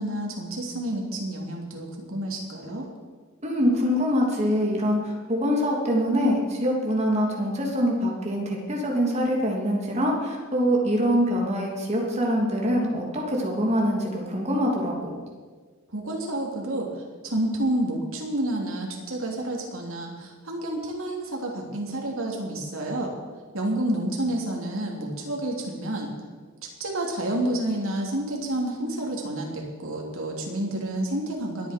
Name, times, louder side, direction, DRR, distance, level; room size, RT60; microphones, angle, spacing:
voice 1, 0.0-2.8 15.9-23.1 23.5-26.1 26.6-31.7, right 1 dB, 65° right, 0 dB, 3.1 m, -29 dB
voice 2, 3.4-15.1, equal, 30° right, -1 dB, 2.9 m, -24 dB
22.0 x 9.1 x 5.3 m, 1.5 s
head